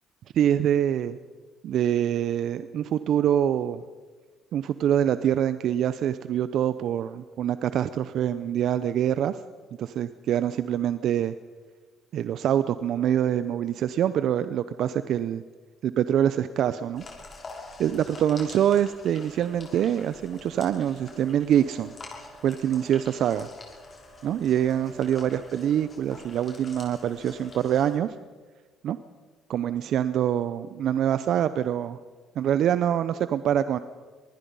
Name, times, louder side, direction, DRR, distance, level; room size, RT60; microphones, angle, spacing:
voice 1, 0.3-1.2 1.6-3.8 4.5-9.4 9.8-11.3 12.1-15.4 15.8-17.0 17.8-21.9 22.4-23.5 24.2-28.1 28.8-29.0 29.5-32.0 32.4-33.8, right 10 dB, 70° right, 13 dB, 0.7 m, -25 dB
sound 1, 16.9-28.0, left 3 dB, 40° left, 6.8 m, -46 dB
25.0 x 20.0 x 5.5 m, 1.4 s
supercardioid pair, 65°, 0 cm